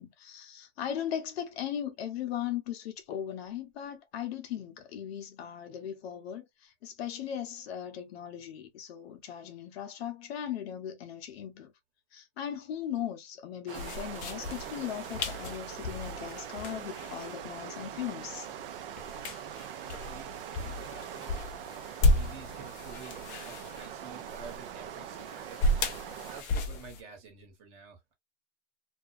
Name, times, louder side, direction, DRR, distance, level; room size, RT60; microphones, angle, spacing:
voice 1, 0.0-11.7 12.1-18.5, left 10 dB, 55° left, 0.7 m, -38 dB
sound 1, 13.7-27.0, left 1 dB, 20° left, 0.4 m, -34 dB
sound 2, 13.7-26.4, right 10 dB, 50° right, 0.5 m, -42 dB
voice 2, 19.6-21.4 22.1-25.7 26.3-28.1, right 5 dB, 35° right, 1.2 m, -50 dB
2.4 x 2.2 x 2.5 m
hypercardioid pair, 130°, 36 cm